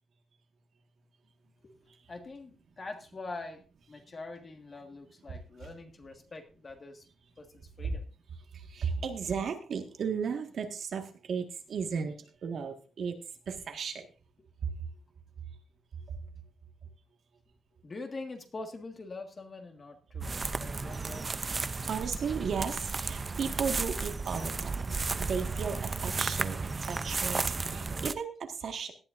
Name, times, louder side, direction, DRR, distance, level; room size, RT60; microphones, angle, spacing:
voice 1, 2.1-7.1 7.4-8.0 17.8-21.3, left 3 dB, 30° left, 5 dB, 1.7 m, -44 dB
voice 2, 5.3-5.7 7.8-8.0 8.5-13.2 13.5-14.1 14.6-14.7 21.9-28.9, right 6 dB, 55° right, 5 dB, 1.7 m, -35 dB
sound 1, 20.2-28.1, right 4 dB, 25° right, 0.5 m, -33 dB
18.0 x 12.0 x 2.6 m, 0.34 s
wide cardioid pair, 155°, 0 cm